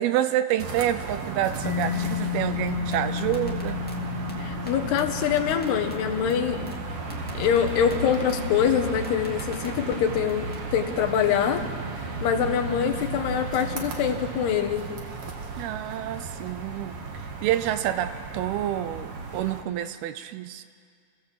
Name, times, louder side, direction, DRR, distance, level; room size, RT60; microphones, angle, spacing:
voice 1, 0.0-3.8 15.6-17.0 17.4-20.6, right 12 dB, 80° right, 11 dB, 2.5 m, -28 dB
sound 1, 0.6-19.6, right 4 dB, 50° right, 1.9 m, -34 dB
Mallet percussion, 1.6-9.1, left 11 dB, 55° left, 1.9 m, -34 dB
sound 2, 2.7-4.0 4.3-4.4 4.7-4.8 5.0-6.0 6.3-6.4 6.7-6.8 7.1-8.0 8.3-8.4 8.7-8.8 9.0-10.0 10.3-10.6, equal, 5° left, 0.8 m, -43 dB
voice 2, 4.4-6.7 7.3-11.7 12.0-14.9, left 8 dB, 80° left, 6 dB, 3.3 m, -25 dB
29.5 x 16.0 x 7.6 m, 2.1 s
omnidirectional pair, 4.7 m